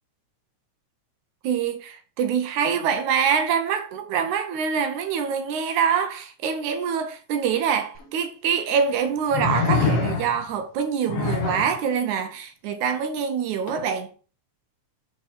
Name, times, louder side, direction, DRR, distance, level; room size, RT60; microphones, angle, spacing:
voice 1, 1.4-14.1, right 7 dB, 75° right, 2.2 m, -25 dB
sound 1, 7.9-8.0 9.3-10.5 11.1-11.8 13.7-13.8, left 4 dB, 60° left, 1.8 m, -24 dB
7.6 x 4.3 x 4.2 m
omnidirectional pair, 3.7 m